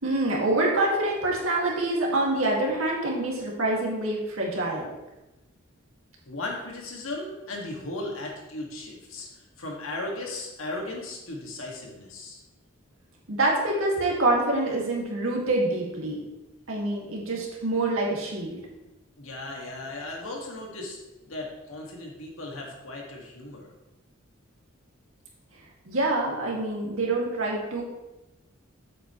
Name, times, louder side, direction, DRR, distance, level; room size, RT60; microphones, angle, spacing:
voice 1, 0.0-4.9 13.3-16.2 16.7-18.6 25.9-27.8, right 2 dB, 80° right, -2 dB, 2.0 m, -26 dB
voice 2, 6.3-12.4 19.2-21.0 21.2-23.7, left 2 dB, 75° left, 0 dB, 1.9 m, -36 dB
8.1 x 7.9 x 3.1 m, 1.0 s
head